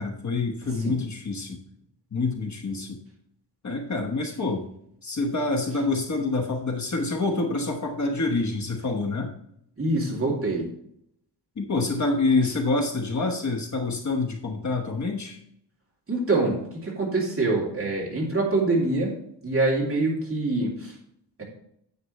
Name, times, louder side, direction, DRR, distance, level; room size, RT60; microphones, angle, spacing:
voice 1, 0.0-1.6 2.1-3.0 3.6-4.7 5.0-9.3 11.6-15.4, left 3 dB, 40° left, 1 dB, 1.1 m, -27 dB
voice 2, 9.8-10.7 16.1-16.6 16.8-19.1 19.4-20.9 21.4-21.5, right 2 dB, 30° right, -3 dB, 2.8 m, -25 dB
9.7 x 8.4 x 3.2 m, 0.71 s
wide cardioid pair, 180°, 42 cm